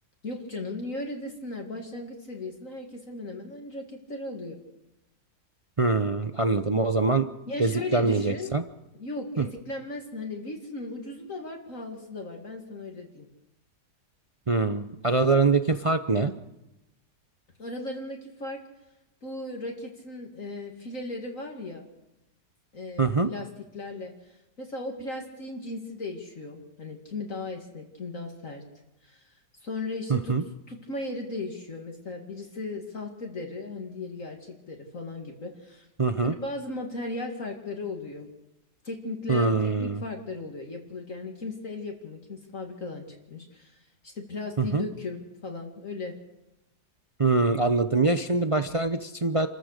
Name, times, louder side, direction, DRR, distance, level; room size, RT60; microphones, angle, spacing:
voice 1, 0.2-4.6 7.5-8.5 9.0-13.3 17.6-18.6 19.2-21.9 22.7-23.5 23.7-24.1 24.6-28.6 29.0-29.3 29.6-30.4 30.7-35.9 36.2-38.3 38.8-39.5 39.8-46.1, left 2 dB, 50° left, 1 dB, 2.5 m, -36 dB
voice 2, 5.8-7.3 7.6-8.6 9.4-9.5 14.5-16.3 23.0-23.3 30.1-30.4 36.0-36.3 39.3-40.0 44.6-44.8 47.2-49.5, right 3 dB, 45° right, 9 dB, 0.4 m, -24 dB
28.5 x 14.5 x 6.6 m, 0.96 s
omnidirectional pair, 1.8 m